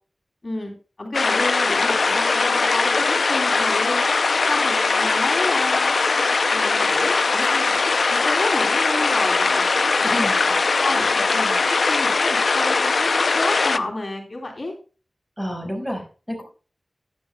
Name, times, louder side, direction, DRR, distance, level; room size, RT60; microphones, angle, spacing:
voice 1, 0.4-4.1 4.5-5.9 6.5-7.8 8.1-14.7, left 2 dB, 50° left, 0 dB, 2.9 m, -30 dB
sound 1, 1.1-13.8, left 4 dB, 85° left, 0.4 m, -20 dB
voice 2, 10.0-10.3 15.4-16.4, equal, 10° right, 2 dB, 4.4 m, -29 dB
14.5 x 10.5 x 2.2 m, 0.36 s
wide cardioid pair, 75°, 0 cm